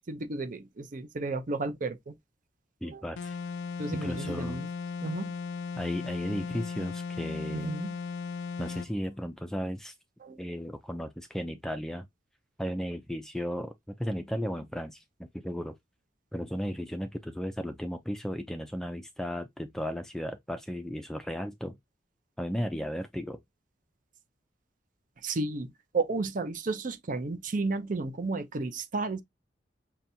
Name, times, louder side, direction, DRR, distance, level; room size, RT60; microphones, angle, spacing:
voice 1, 0.0-2.1 2.8-3.0 3.8-4.7 5.0-5.3 7.5-7.9 10.2-10.4 25.2-29.2, right 3 dB, 45° right, 0.6 m, -33 dB
voice 2, 2.8-3.4 3.9-4.6 5.8-7.7 8.6-9.9 10.4-12.1 12.6-15.8 16.3-21.8 22.4-23.4, equal, 5° left, 0.3 m, -35 dB
sound 1, 3.2-8.9, left 5 dB, 90° left, 0.4 m, -36 dB
5.7 x 2.2 x 2.7 m
head